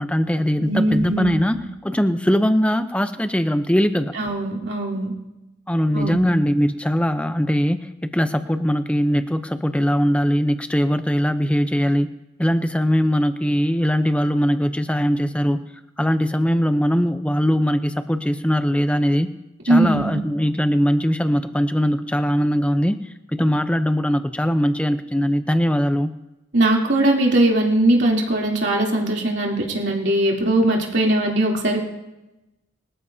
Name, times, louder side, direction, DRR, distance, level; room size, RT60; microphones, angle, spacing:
voice 1, 0.0-4.1 5.7-12.1 12.4-15.6 16.0-19.3 19.6-23.0 23.3-26.1, equal, 5° left, 9 dB, 0.6 m, -21 dB
voice 2, 0.6-1.6 4.1-5.1 5.9-6.3 19.7-20.2 26.5-31.8, right 1 dB, 60° right, -2 dB, 3.1 m, -20 dB
24.5 x 13.5 x 2.8 m, 0.97 s
head